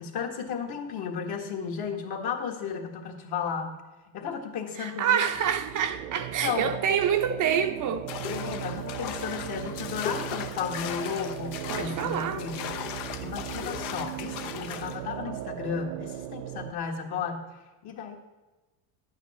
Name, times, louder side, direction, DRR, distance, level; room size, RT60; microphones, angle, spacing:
voice 1, 0.0-3.8 4.0-5.2 6.4-6.7 8.3-12.9 13.2-18.2, left 6 dB, 50° left, 1.7 m, -34 dB
voice 2, 4.8-8.0 11.7-12.4, right 8 dB, 40° right, 0.7 m, -27 dB
sound 1, 5.2-16.7, right 12 dB, 80° right, 0.8 m, -38 dB
sound 2, 8.1-15.0, left 9 dB, 65° left, 1.0 m, -37 dB
11.0 x 9.0 x 4.2 m
supercardioid pair, 110°, 49 cm